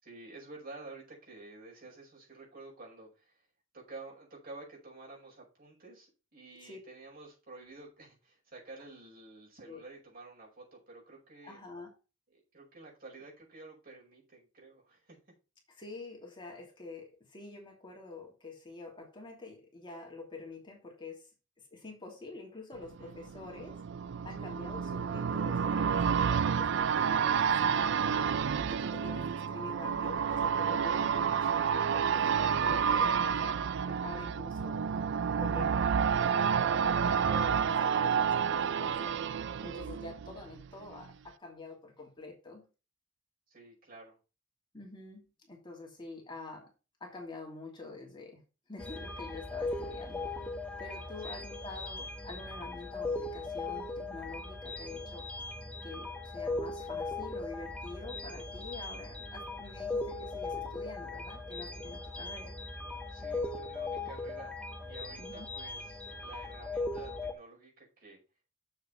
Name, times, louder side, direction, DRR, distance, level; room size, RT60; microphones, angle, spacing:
voice 1, 0.0-3.5 3.7-11.6 12.3-15.2 22.7-23.1 24.3-24.5 43.5-44.2 49.7-49.8 51.2-51.5 63.1-68.2, right 3 dB, 50° right, -3 dB, 5.3 m, -51 dB
voice 2, 11.4-11.9 15.8-21.3 21.7-23.8 24.2-34.8 35.3-42.7 44.7-46.7 47.0-48.4 48.7-50.3 50.8-55.3 55.8-62.6 65.2-65.5, left 3 dB, 25° left, 0 dB, 2.8 m, -47 dB
sound 1, 22.9-40.7 41.0-41.1, right 7 dB, 65° right, 0.4 m, -30 dB
sound 2, 48.8-67.3, left 2 dB, 5° left, 1.3 m, -39 dB
7.4 x 6.4 x 5.6 m, 0.31 s
head